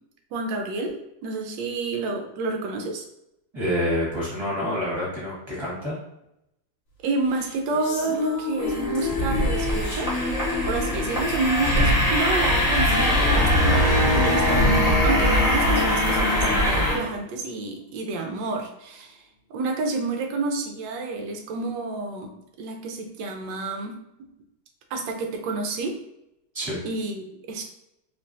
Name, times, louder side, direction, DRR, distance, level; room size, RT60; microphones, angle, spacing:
voice 1, 0.3-3.0 7.0-10.1 10.6-19.2 19.5-22.3 22.6-23.9 24.9-26.0 26.8-27.6, right 3 dB, 70° right, 3 dB, 1.1 m, -29 dB
voice 2, 3.5-6.0 26.5-26.8, equal, 15° right, -7 dB, 1.2 m, -27 dB
sound 1, 7.3-17.7, left 4 dB, 65° left, 0.8 m, -31 dB
sound 2, 8.6-17.0, equal, 25° left, 0.8 m, -22 dB
3.3 x 3.0 x 2.6 m, 0.83 s
omnidirectional pair, 2.4 m